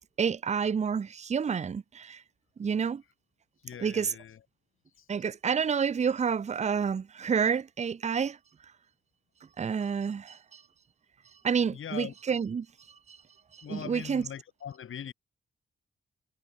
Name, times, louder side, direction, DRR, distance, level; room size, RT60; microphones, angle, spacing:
voice 1, 0.2-2.2 2.6-3.0 3.8-4.1 5.1-8.4 9.6-10.6 11.4-12.7 13.1-13.2 13.7-14.2, right 6 dB, 35° right, 0.6 m, -29 dB
voice 2, 3.6-4.4 5.0-5.1 11.7-12.1 13.6-15.1, left 9 dB, 85° left, 4.1 m, -41 dB
wide cardioid pair, 150°, 20 cm